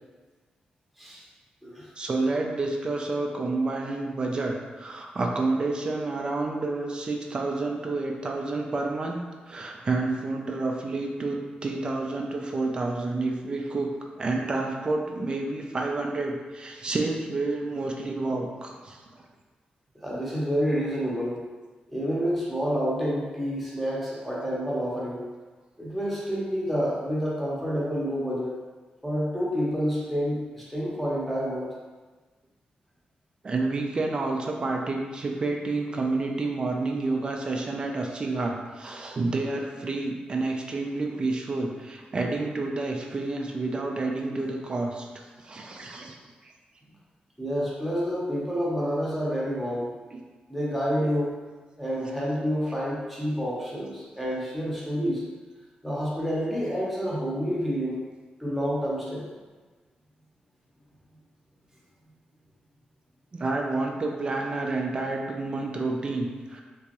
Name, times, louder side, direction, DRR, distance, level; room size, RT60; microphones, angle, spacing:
voice 1, 2.0-9.2 9.5-13.9 14.2-19.0 33.4-46.2 46.4-46.5 50.1-50.2 63.3-66.6, right 3 dB, 30° right, 1 dB, 0.4 m, -29 dB
voice 2, 20.0-21.4 21.9-25.2 25.8-28.6 29.0-31.7 47.4-49.9 50.5-51.4 51.8-55.2 55.8-58.0 58.4-59.3, equal, ahead, -6 dB, 0.8 m, -28 dB
3.4 x 3.0 x 2.9 m, 1.3 s
wide cardioid pair, 160°, 3 cm